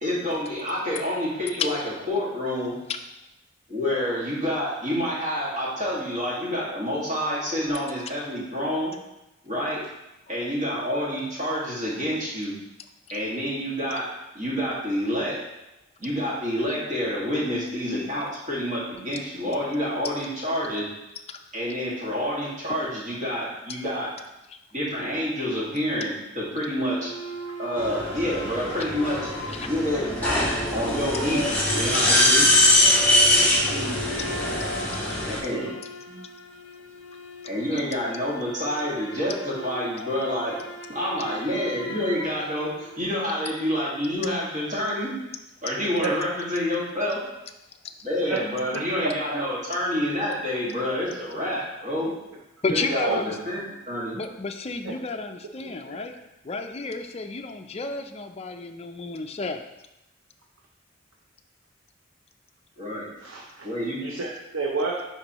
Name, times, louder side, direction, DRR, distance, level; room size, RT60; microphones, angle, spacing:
voice 1, 0.0-2.8 3.7-8.9 9.4-9.8 10.3-12.5 13.1-14.1 14.3-15.4 16.0-20.9 21.5-24.1 24.7-27.1 27.6-29.2 29.6-30.5 30.7-32.5 35.2-35.7 37.4-40.5 40.9-45.1 45.6-47.2 48.0-52.1 52.7-53.6 53.9-54.2 62.8-63.0 63.6-64.0, equal, 35° right, -6 dB, 1.9 m, -28 dB
sound 1, 26.9-43.5, left 1 dB, 65° left, 0.8 m, -38 dB
sound 2, 27.8-35.4, left 1 dB, 10° left, 1.4 m, -22 dB
voice 2, 33.6-34.4 35.5-35.8 36.1-36.3 46.0-46.2 48.3-48.8 49.3-49.4 52.7-53.2 54.8-55.0 55.8-56.0 63.2-63.7 64.0-65.1, right 3 dB, 85° right, 0 dB, 0.7 m, -31 dB
voice 3, 52.6-53.3 54.1-56.1 56.4-59.6, left 4 dB, 30° left, 5 dB, 0.4 m, -31 dB
9.9 x 4.1 x 3.0 m, 0.93 s
head